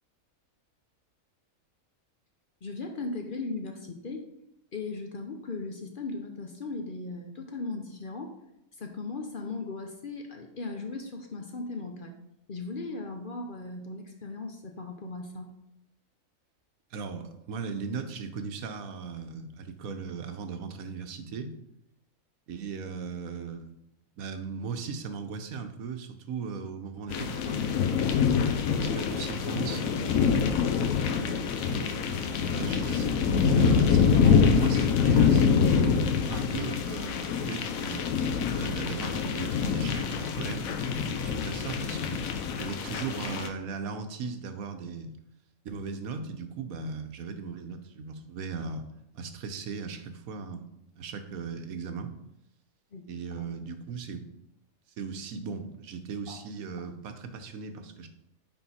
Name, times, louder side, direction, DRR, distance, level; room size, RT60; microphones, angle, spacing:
voice 1, 2.6-4.3 4.7-8.3 8.8-12.1 12.5-15.5 52.9-53.4 56.3-56.4, left 3 dB, 50° left, 4 dB, 0.7 m, -37 dB
voice 2, 16.9-21.5 22.5-23.7 24.2-27.7 28.4-30.5 31.6-32.0 32.5-38.0 38.6-40.7 41.2-42.2 42.5-45.1 45.6-48.9 49.1-50.7 51.0-52.1 53.1-54.2 55.0-58.1, right 5 dB, 90° right, 8 dB, 1.2 m, -37 dB
sound 1, 27.1-43.5, left 6 dB, 85° left, 1.1 m, -25 dB
9.1 x 3.7 x 4.2 m, 0.84 s
omnidirectional pair, 1.4 m